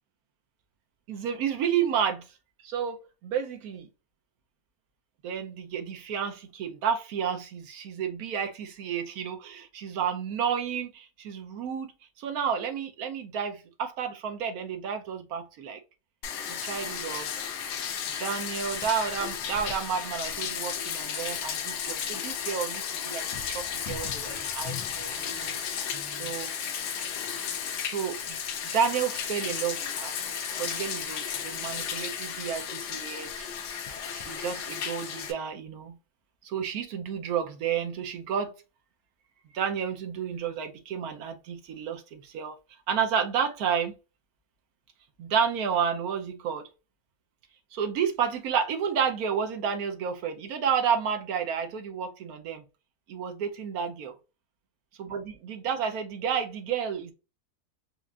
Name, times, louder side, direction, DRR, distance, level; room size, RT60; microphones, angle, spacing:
voice 1, 1.1-2.3 2.6-3.9 5.2-11.9 12.2-15.8 16.5-17.3 18.1-26.5 27.8-28.4 28.6-30.2 30.6-33.8 34.1-36.0 36.4-38.5 39.5-42.6 42.9-43.9 45.2-46.6 47.7-52.6 53.1-54.1 55.0-57.1, right 7 dB, 70° right, 1.1 m, -31 dB
Bathtub (filling or washing), 16.2-35.3, left 8 dB, 90° left, 1.3 m, -34 dB
4.6 x 2.5 x 2.3 m
omnidirectional pair, 1.7 m